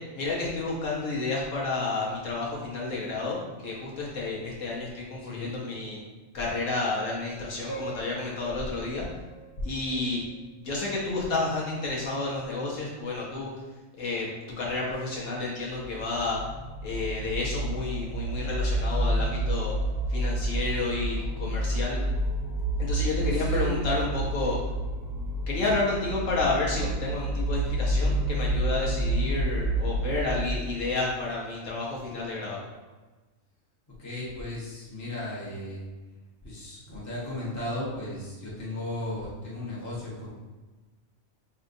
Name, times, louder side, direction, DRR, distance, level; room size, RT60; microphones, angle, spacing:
voice 1, 0.1-6.0 6.3-9.1 9.6-10.2 10.6-13.5 14.0-14.3 14.6-16.4 16.8-19.7 20.1-22.0 22.8-24.6 25.5-32.6, left 3 dB, 70° left, -4 dB, 1.2 m, -30 dB
voice 2, 5.2-5.6 23.2-23.8 24.2-24.6 34.0-35.8 36.4-40.3, left 1 dB, 15° left, -8 dB, 1.0 m, -36 dB
Piano, 7.7-10.7, right 3 dB, 20° right, 0.7 m, -43 dB
sound 1, 15.8-30.6, right 1 dB, 85° left, 1.7 m, -29 dB
5.5 x 2.7 x 2.5 m, 1.2 s
omnidirectional pair, 1.4 m